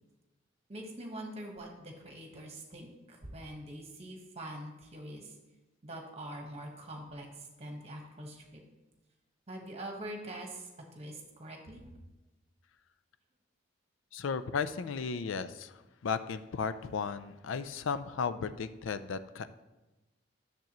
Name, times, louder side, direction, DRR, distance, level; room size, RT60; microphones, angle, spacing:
voice 1, 0.7-5.3 5.8-8.6 9.5-11.9, right 1 dB, 35° right, 2 dB, 1.3 m, -44 dB
voice 2, 14.1-19.5, left 5 dB, 80° left, 12 dB, 0.4 m, -35 dB
10.5 x 6.9 x 3.0 m, 1.1 s
head